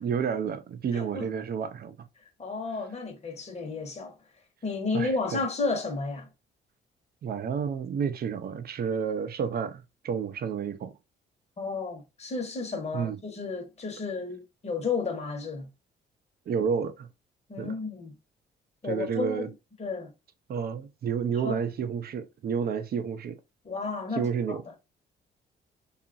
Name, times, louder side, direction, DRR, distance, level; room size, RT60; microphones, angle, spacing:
voice 1, 0.0-1.9 4.9-5.4 7.2-10.9 12.9-13.2 16.5-17.1 17.6-17.8 18.8-19.5 20.5-23.3 24.1-24.6, right 6 dB, 50° right, 0.5 m, -30 dB
voice 2, 0.9-1.3 2.4-4.2 4.6-6.3 11.6-15.7 17.5-18.1 18.8-19.5 19.8-20.1 21.4-21.6 23.6-24.6, left 4 dB, 35° left, 1.0 m, -32 dB
2.8 x 2.4 x 2.5 m
cardioid pair, 90°, 20 cm